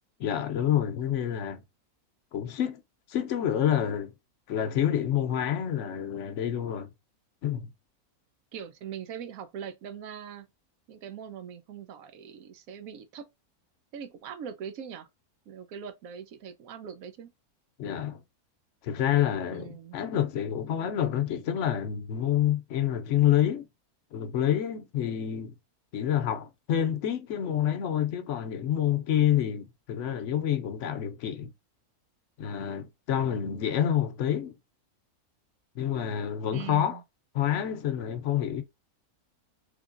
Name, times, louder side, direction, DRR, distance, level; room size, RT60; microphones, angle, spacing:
voice 1, 0.2-1.6 2.3-2.8 3.1-4.1 4.5-6.9 7.4-7.7 17.8-18.2 18.8-23.7 24.1-25.5 25.9-31.5 32.4-34.6 35.8-37.0 37.3-38.6, left 10 dB, 60° left, 0.9 m, -28 dB
voice 2, 8.5-10.5 10.9-13.3 13.9-15.1 15.5-17.3 19.5-20.0 36.5-37.0, right 8 dB, 75° right, 1.0 m, -41 dB
3.5 x 3.3 x 2.4 m
omnidirectional pair, 1.6 m